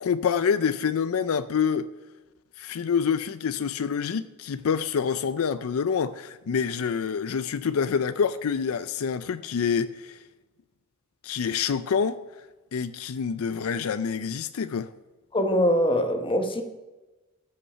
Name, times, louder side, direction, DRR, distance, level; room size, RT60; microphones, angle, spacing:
voice 1, 0.0-1.9 2.6-10.2 11.2-12.2 12.7-14.9, left 6 dB, 80° left, 0.4 m, -27 dB
voice 2, 15.3-16.6, equal, 25° left, 1.1 m, -23 dB
14.5 x 5.5 x 5.5 m
head